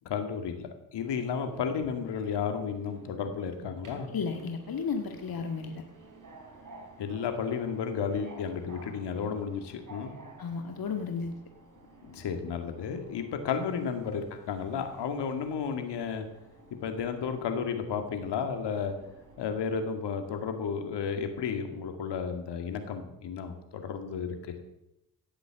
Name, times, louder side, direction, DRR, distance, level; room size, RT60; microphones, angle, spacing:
voice 1, 0.0-4.1 7.0-10.1 12.0-16.3 16.7-19.0 19.4-24.5, left 6 dB, 75° left, 6 dB, 2.3 m, -33 dB
Subway metro underground, 1.0-19.8, right 2 dB, 50° right, 4.2 m, -53 dB
voice 2, 4.1-5.8 10.4-11.3, left 5 dB, 55° left, 5 dB, 1.9 m, -33 dB
17.0 x 8.3 x 7.3 m, 0.87 s
hypercardioid pair, 40°, 42 cm